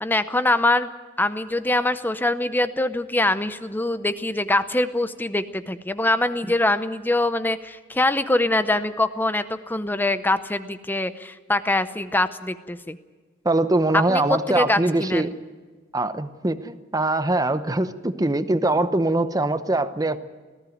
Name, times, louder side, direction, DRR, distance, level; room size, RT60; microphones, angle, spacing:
voice 1, 0.0-0.9 1.2-13.0 13.9-15.3, left 2 dB, 10° left, 12 dB, 0.6 m, -23 dB
voice 2, 13.4-15.3 15.9-20.2, right 2 dB, 20° right, 12 dB, 0.8 m, -22 dB
19.0 x 15.0 x 9.3 m, 1.4 s
head